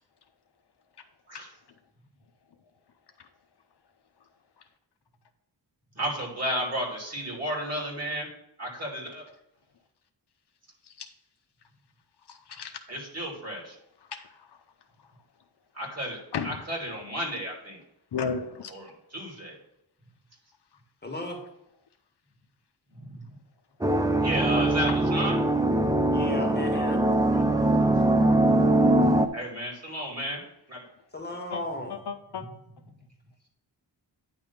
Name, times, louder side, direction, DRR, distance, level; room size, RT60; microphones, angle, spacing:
voice 1, 6.0-8.3 8.6-9.2 12.9-13.7 15.7-17.8 18.7-19.5 22.9-23.1 24.2-25.4 29.3-30.4 30.7-30.8 32.3-32.5, equal, 35° right, -2 dB, 2.8 m, -33 dB
voice 2, 12.3-12.7 14.1-14.2 16.3-16.6 18.1-18.7 24.9-25.0 27.2-27.9 28.8-29.2 31.5-31.6 32.1-32.4, left 6 dB, 65° left, 7 dB, 0.7 m, -34 dB
voice 3, 21.0-21.4 26.1-27.0 31.1-32.0, left 2 dB, 20° left, 0 dB, 1.7 m, -35 dB
sound 1, 23.8-29.3, right 1 dB, 10° right, 0.5 m, -22 dB
9.6 x 3.4 x 5.7 m, 0.81 s
wide cardioid pair, 70°, 44 cm